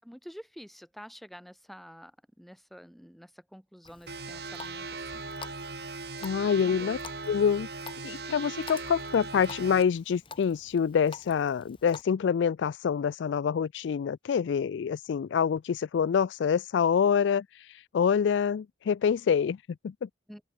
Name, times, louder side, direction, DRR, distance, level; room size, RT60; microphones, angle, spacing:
voice 1, 0.0-5.3 6.4-6.9 20.3-20.4, equal, ahead, 6.0 m, -49 dB
Water tap faucet, 3.8-12.0, left 4 dB, 30° left, 2.0 m, -49 dB
sound 1, 4.1-9.8, right 3 dB, 60° right, 5.5 m, -39 dB
voice 2, 6.2-7.0 7.3-7.7 8.0-17.5 17.9-19.6 19.8-20.1, left 7 dB, 85° left, 0.3 m, -26 dB
open air
head